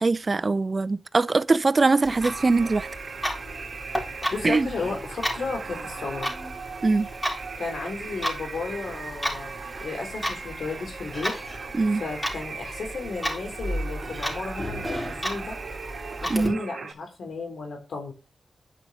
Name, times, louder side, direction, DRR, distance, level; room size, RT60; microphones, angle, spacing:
voice 1, 0.0-2.9 4.4-4.7 6.8-7.1 11.7-12.0 16.3-16.6, right 3 dB, 45° right, 0.5 m, -22 dB
Clock, 2.0-16.5, equal, 15° left, 4.0 m, -34 dB
sound 1, 2.2-16.9, right 5 dB, 70° right, 1.8 m, -39 dB
voice 2, 4.3-6.3 7.6-9.5 9.8-11.3 12.0-15.6 16.2-18.1, left 4 dB, 85° left, 3.9 m, -34 dB
10.0 x 5.6 x 5.8 m
cardioid pair, 55°, 0 cm